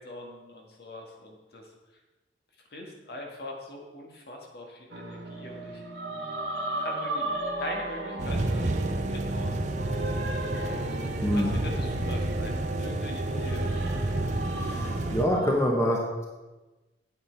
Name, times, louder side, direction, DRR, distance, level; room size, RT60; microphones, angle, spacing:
voice 1, 0.0-1.7 2.7-5.8 6.7-7.3 7.6-10.0 11.3-13.6, left 1 dB, 60° left, 0 dB, 1.8 m, -42 dB
sound 1, 4.9-15.5, right 1 dB, 90° right, 2.0 m, -35 dB
sound 2, 8.2-15.2, right 2 dB, 40° right, 0.7 m, -30 dB
voice 2, 11.2-11.6 14.5-16.3, equal, 15° left, -1 dB, 1.2 m, -26 dB
8.8 x 8.6 x 4.7 m, 1.1 s
head